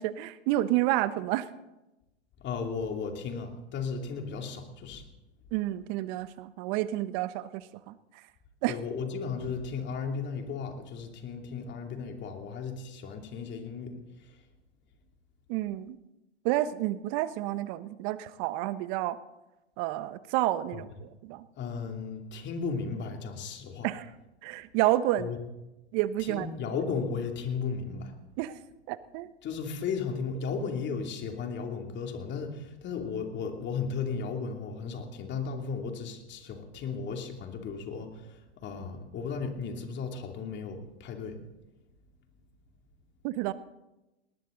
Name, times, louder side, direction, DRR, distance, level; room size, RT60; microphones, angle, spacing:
voice 1, 0.0-1.5 5.5-7.9 8.6-8.8 15.5-16.0 16.4-19.2 19.8-21.4 23.8-24.1 24.4-25.3 25.9-26.5 28.4-28.6 28.9-29.3 43.2-43.5, right 15 dB, 45° right, 14 dB, 1.1 m, -30 dB
voice 2, 2.4-5.1 8.7-14.4 20.7-20.8 21.6-23.9 25.2-25.4 26.2-28.1 29.4-41.4, left 5 dB, 35° left, 4 dB, 2.8 m, -35 dB
19.5 x 19.0 x 3.9 m, 1.0 s
hypercardioid pair, 110°, 33 cm